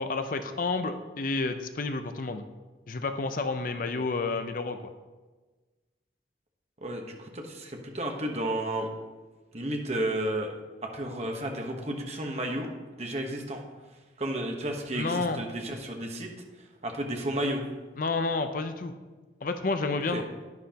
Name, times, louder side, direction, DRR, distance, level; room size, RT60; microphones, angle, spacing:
voice 1, 0.0-2.4 2.9-4.9 14.9-15.4 18.0-18.9 19.4-20.2, left 3 dB, 50° left, 8 dB, 0.6 m, -30 dB
voice 2, 6.8-8.9 9.5-10.5 10.8-12.7 13.0-13.6 14.2-16.3 16.8-17.6 20.1-20.2, right 1 dB, 35° right, 2 dB, 1.1 m, -32 dB
10.5 x 9.7 x 2.9 m, 1.3 s
head